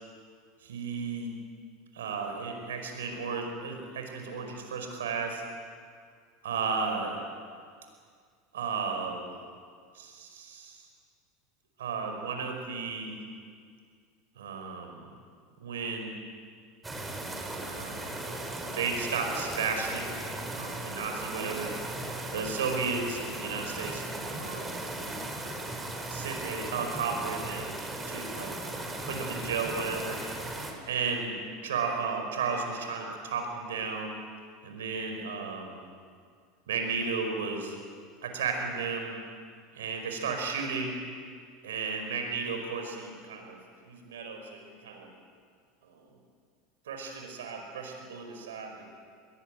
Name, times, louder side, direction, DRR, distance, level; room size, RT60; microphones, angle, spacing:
voice 1, 0.6-1.3 1.9-5.4 6.4-7.2 8.5-9.3 9.9-10.9 11.8-13.2 14.3-15.1 15.6-16.1 17.7-18.3 18.7-20.1 20.6-21.7 22.3-24.1 24.4-24.8 26.1-27.8 28.1-28.5 29.0-30.2 30.9-34.1 34.6-35.8 36.7-37.7 38.2-39.1 39.7-40.9 41.6-43.6 43.8-45.1 45.8-46.0 46.9-48.9, right 5 dB, 85° right, 3 dB, 5.2 m, -34 dB
sound 1, 16.8-30.7, right 2 dB, 15° right, 4.9 m, -37 dB
22.5 x 20.0 x 9.4 m, 2.1 s
hypercardioid pair, 95°, 0 cm